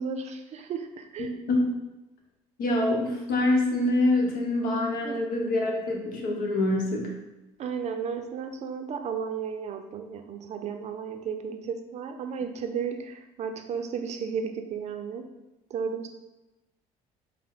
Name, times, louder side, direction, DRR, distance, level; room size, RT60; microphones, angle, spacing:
voice 1, 0.0-1.4 5.0-5.2 7.6-15.2 15.7-16.1, right 6 dB, 45° right, 6 dB, 0.4 m, -34 dB
voice 2, 2.6-7.1, left 1 dB, 65° left, 1 dB, 0.9 m, -25 dB
4.2 x 2.1 x 3.6 m, 1.0 s
supercardioid pair, 85°, 15 cm